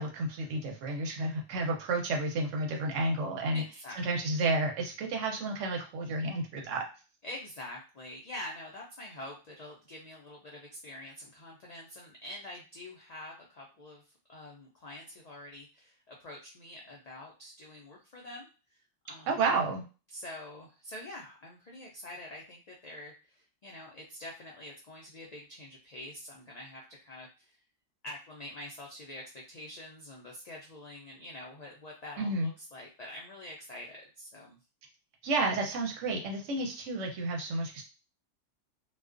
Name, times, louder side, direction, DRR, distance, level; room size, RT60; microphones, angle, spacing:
voice 1, 0.0-3.6 4.0-6.8 19.3-19.8 32.2-32.5 35.2-37.8, right 2 dB, 80° right, 1 dB, 1.0 m, -31 dB
voice 2, 3.5-4.3 7.2-14.0 14.3-18.8 19.1-19.4 20.1-27.6 28.0-34.6, left 1 dB, 80° left, -2 dB, 0.3 m, -46 dB
2.4 x 2.2 x 2.4 m, 0.33 s
omnidirectional pair, 1.3 m